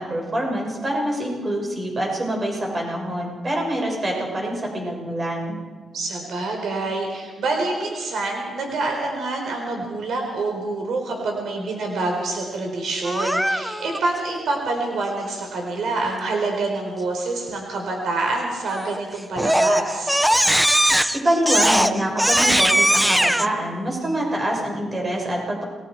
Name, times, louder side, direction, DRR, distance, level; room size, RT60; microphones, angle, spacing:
voice 1, 0.0-5.6 21.2-25.6, right 1 dB, 30° right, -1 dB, 7.0 m, -25 dB
voice 2, 5.9-20.2, right 2 dB, 75° right, 1 dB, 4.5 m, -26 dB
Crying sobbing, 13.0-14.0 18.7-19.0 19.4-23.5, equal, 5° right, 1.0 m, -19 dB
29.0 x 21.5 x 4.9 m, 1.5 s
cardioid pair, 100°, 0 cm